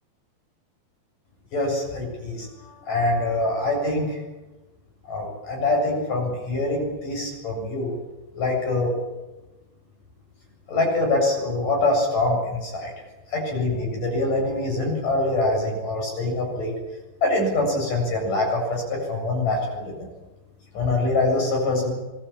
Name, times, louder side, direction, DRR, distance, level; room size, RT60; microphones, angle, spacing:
voice 1, 1.5-2.5 2.8-4.2 5.1-7.9 8.3-8.9 10.7-12.9 13.3-16.7 17.2-20.1 20.7-21.9, left 2 dB, 50° left, 1 dB, 9.3 m, -24 dB
26.0 x 21.0 x 8.7 m, 1.1 s
omnidirectional pair, 4.9 m